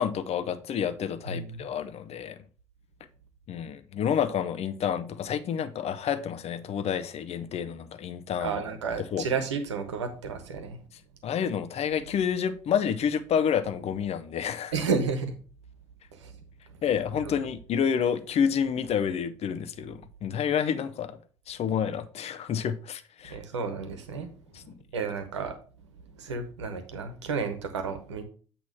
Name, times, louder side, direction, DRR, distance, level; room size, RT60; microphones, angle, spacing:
voice 1, 0.0-2.4 3.5-8.6 9.1-9.3 11.2-14.7 16.8-21.2 21.5-23.4 24.5-24.8, left 8 dB, 45° left, 0.7 m, -29 dB
voice 2, 1.3-1.7 8.4-10.8 14.7-15.4 16.1-16.3 23.3-24.3 24.9-25.6 26.2-28.2, right 5 dB, 80° right, 0.9 m, -31 dB
8.2 x 3.0 x 6.2 m
figure-of-eight pair, 55°, 15 cm